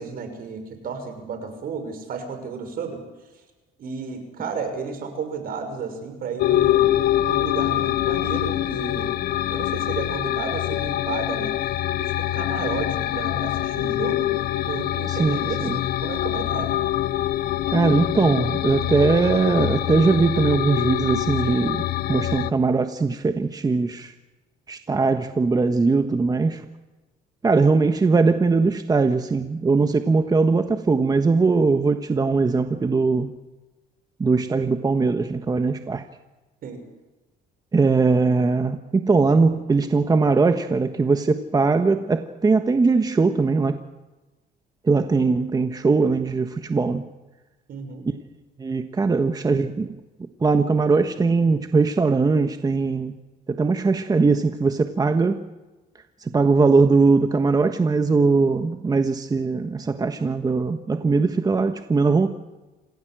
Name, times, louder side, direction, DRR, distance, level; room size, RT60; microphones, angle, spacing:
voice 1, 0.0-3.0 3.8-6.9 7.3-11.5 12.0-14.3 14.7-16.7 36.6-36.8 47.7-48.1, right 5 dB, 60° right, 7 dB, 6.2 m, -33 dB
sound 1, 6.4-22.5, left 13 dB, 65° left, 0.9 m, -24 dB
voice 2, 15.1-15.8 17.7-24.1 24.7-26.7 27.4-33.3 34.2-36.0 37.7-43.8 44.8-47.1 48.6-49.9 50.4-53.1 53.5-55.5 56.2-62.3, right 4 dB, 20° right, 8 dB, 1.3 m, -20 dB
27.5 x 17.5 x 7.8 m, 1.1 s
cardioid pair, 110°, 17 cm